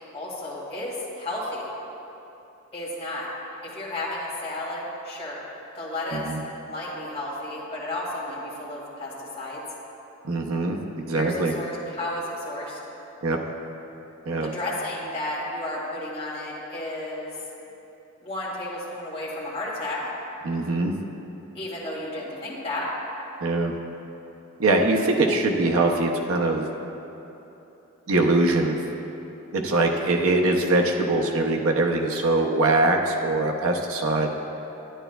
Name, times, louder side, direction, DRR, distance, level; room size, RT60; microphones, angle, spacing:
voice 1, 0.1-1.7 2.7-3.3 3.6-5.4 5.7-6.3 6.7-9.6 11.1-12.8 14.4-17.3 18.2-20.1 21.5-22.9, left 1 dB, 30° left, -7 dB, 2.0 m, -32 dB
voice 2, 10.2-11.6 13.2-13.4 14.3-14.5 20.4-20.9 23.4-23.7 24.6-26.6 28.1-28.8 29.5-34.3, right 2 dB, 80° right, 2 dB, 0.6 m, -22 dB
11.0 x 9.9 x 2.3 m, 3.0 s
head